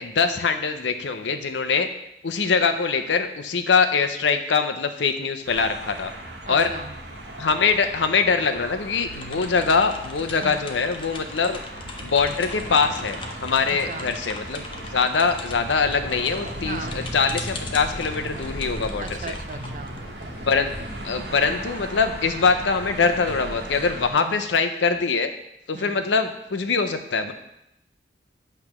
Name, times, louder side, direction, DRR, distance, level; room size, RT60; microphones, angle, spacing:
voice 1, 0.0-1.9 2.2-6.1 6.5-6.7 7.4-11.6 12.0-19.3 20.5-20.7 21.0-25.3 25.7-27.3, left 5 dB, 80° left, 8 dB, 0.7 m, -23 dB
sound 1, 5.4-24.1, right 1 dB, 70° right, 1.3 m, -36 dB
voice 2, 6.5-6.9 10.4-10.6 13.7-14.1 16.6-17.0 19.0-20.0 24.2-24.4 25.7-26.1, right 4 dB, 45° right, 7 dB, 0.5 m, -37 dB
sound 2, 9.1-20.7, left 3 dB, 30° left, 0.6 m, -40 dB
8.6 x 3.3 x 5.9 m, 0.82 s
head